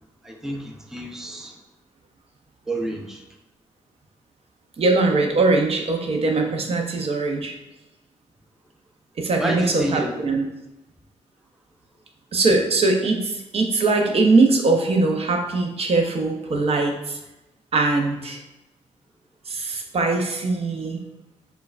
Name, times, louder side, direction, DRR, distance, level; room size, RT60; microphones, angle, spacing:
voice 1, 0.2-1.5 2.7-3.2 9.4-10.1, right 1 dB, 5° right, 1 dB, 0.5 m, -29 dB
voice 2, 4.8-7.6 9.2-10.5 12.3-17.2 17.7-18.4 19.5-21.0, right 3 dB, 55° right, 3 dB, 0.6 m, -21 dB
4.4 x 2.2 x 2.4 m, 0.97 s
cardioid pair, 60°, 13 cm